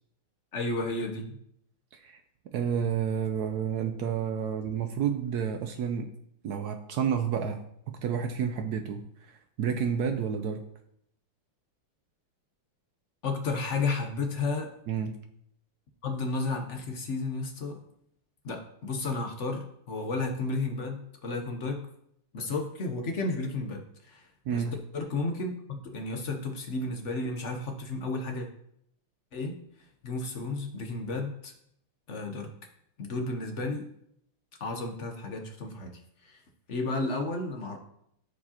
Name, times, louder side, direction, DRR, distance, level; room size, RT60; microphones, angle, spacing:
voice 1, 0.5-1.4 13.2-14.7 16.0-17.8 18.4-21.9 22.3-28.5 29.3-29.6 30.0-31.5 32.1-32.5 33.0-33.9 34.6-36.0 36.2-36.4 36.7-37.8, left 3 dB, 55° left, 3 dB, 0.8 m, -32 dB
voice 2, 2.5-6.1 6.4-7.6 7.9-9.0 9.3-10.6 14.9-15.2 24.5-24.7, right 7 dB, 85° right, 5 dB, 0.8 m, -30 dB
13.5 x 4.8 x 2.9 m, 0.72 s
omnidirectional pair, 2.4 m